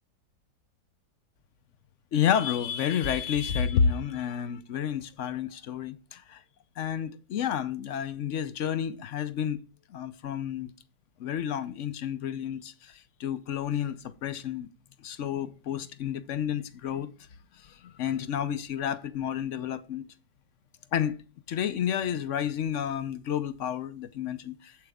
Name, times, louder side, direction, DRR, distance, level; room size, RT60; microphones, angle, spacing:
voice 1, 2.1-6.4 6.8-9.6 9.9-10.7 11.2-14.7 15.0-17.1 17.5-20.0 20.9-21.2 21.5-24.8, left 8 dB, 60° left, 0.9 m, -30 dB
8.0 x 7.9 x 3.6 m
omnidirectional pair, 1.8 m